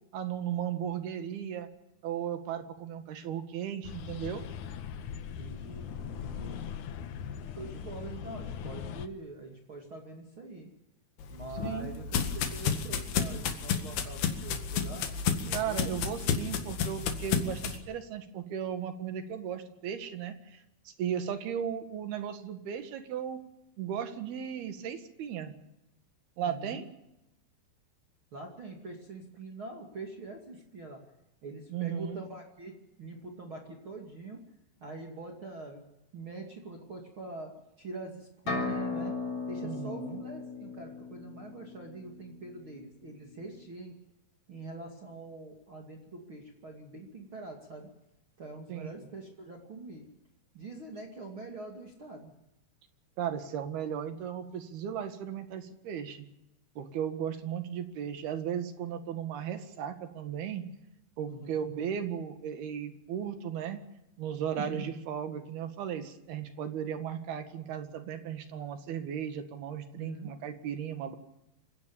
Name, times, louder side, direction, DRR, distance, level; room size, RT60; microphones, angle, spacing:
voice 1, 0.1-1.7 2.0-4.4 11.6-11.9 15.5-23.4 23.8-25.5 26.4-26.9 31.7-32.2 39.6-40.2 48.7-48.9 53.2-56.3 56.8-60.6 61.2-63.8 64.2-71.2, right 9 dB, 80° right, 8 dB, 3.8 m, -36 dB
sound 1, 3.8-9.1, left 8 dB, 65° left, 2.2 m, -40 dB
voice 2, 5.4-6.6 7.6-10.7 11.3-12.2 12.5-15.1 15.4-16.2 16.6-16.9 26.4-26.8 28.3-31.0 31.4-34.4 34.8-35.8 36.1-37.5 37.8-39.2 39.5-44.0 44.5-47.9 48.4-50.1 50.5-52.3 61.3-61.6 64.5-64.8 69.9-70.3, right 3 dB, 35° right, 1 dB, 2.9 m, -44 dB
sound 2, 11.2-17.8, left 7 dB, 90° left, 3.9 m, -31 dB
sound 3, 38.5-42.2, left 3 dB, 35° left, 4.4 m, -36 dB
27.0 x 16.5 x 7.2 m, 0.89 s
omnidirectional pair, 4.4 m